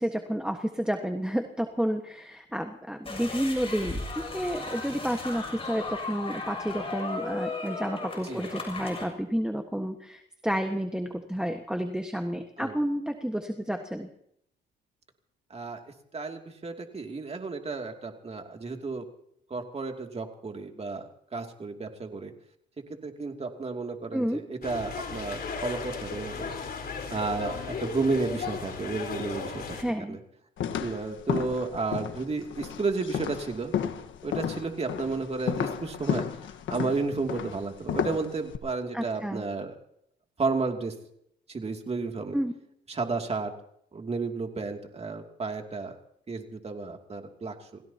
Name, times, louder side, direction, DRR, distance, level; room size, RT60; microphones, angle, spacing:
voice 1, 0.0-14.1 24.1-24.4 29.7-30.2 38.9-39.4 42.3-42.5, equal, 5° right, 5 dB, 1.5 m, -30 dB
sound 1, 3.1-9.0, left 3 dB, 30° left, 7.1 m, -36 dB
voice 2, 15.5-15.8 16.1-19.1 19.5-22.3 23.0-26.5 27.1-29.8 30.1-30.2 30.8-33.7 34.2-36.2 36.7-39.8 40.4-40.9 41.5-42.4 42.9-43.5 43.9-46.0 46.3-47.8, right 4 dB, 30° right, 3 dB, 2.7 m, -32 dB
sound 2, 24.6-29.8, left 5 dB, 50° left, 4.2 m, -35 dB
sound 3, 30.6-38.6, left 9 dB, 75° left, 1.4 m, -33 dB
29.5 x 16.5 x 2.9 m, 0.71 s
cardioid pair, 90°, 20 cm